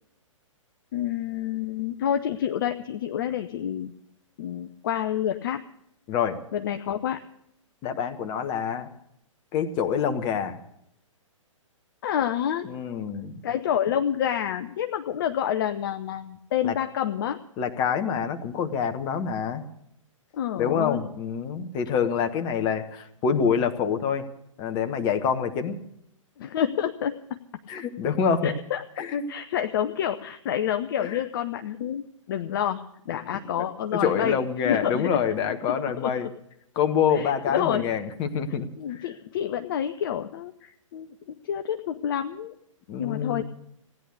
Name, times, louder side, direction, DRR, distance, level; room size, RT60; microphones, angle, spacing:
voice 1, 0.9-3.9 4.4-5.6 6.5-7.2 12.0-12.7 13.4-17.4 20.3-21.0 26.4-27.4 28.4-28.8 29.3-34.4 34.6-35.3 35.7-36.1 37.1-37.8 38.8-42.5 43.0-43.4, left 10 dB, 40° left, 7 dB, 0.7 m, -28 dB
voice 2, 7.8-8.9 9.5-10.6 12.6-13.4 16.6-16.7 17.6-19.6 20.6-24.2 24.6-25.8 27.7-28.5 29.0-29.2 31.0-31.2 33.6-33.7 34.0-36.3 36.7-39.1 42.9-43.4, left 7 dB, 25° left, 9 dB, 1.2 m, -26 dB
17.0 x 10.0 x 8.0 m, 0.75 s
figure-of-eight pair, 120°, 17 cm